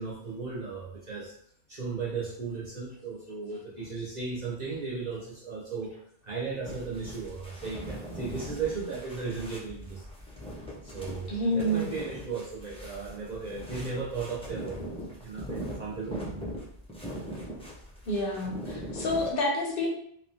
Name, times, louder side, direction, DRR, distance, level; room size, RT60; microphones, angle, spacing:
voice 1, 0.0-1.3 1.7-5.9 6.2-10.0 10.8-14.9 15.2-16.4, right 4 dB, 50° right, -6 dB, 0.6 m, -36 dB
sound 1, 6.6-19.3, equal, 10° left, 0.3 m, -41 dB
voice 2, 11.3-11.9 18.1-19.9, equal, 60° left, -1 dB, 0.7 m, -28 dB
3.1 x 2.0 x 2.5 m, 0.68 s
omnidirectional pair, 1.2 m